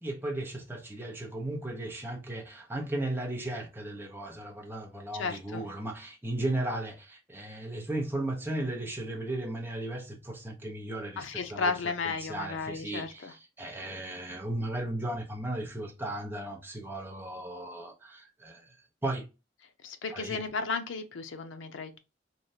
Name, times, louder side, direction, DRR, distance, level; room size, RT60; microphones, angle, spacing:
voice 1, 0.0-11.7 12.0-18.7 19.0-19.2 20.1-20.4, right 1 dB, 10° right, 0.7 m, -36 dB
voice 2, 5.1-5.6 11.2-13.3 19.8-22.0, left 4 dB, 85° left, 0.6 m, -34 dB
3.2 x 2.4 x 2.6 m
head